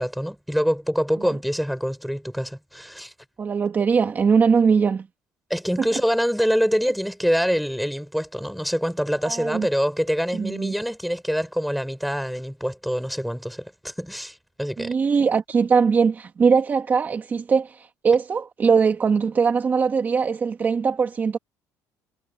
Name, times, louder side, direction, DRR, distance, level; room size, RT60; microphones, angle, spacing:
voice 1, 0.0-3.1 5.5-14.9, equal, ahead, 5.8 m, -25 dB
voice 2, 3.4-5.1 5.8-6.0 9.2-9.7 10.4-10.7 14.8-21.4, right 5 dB, 30° right, 1.9 m, -21 dB
cardioid pair, 140°, 7 cm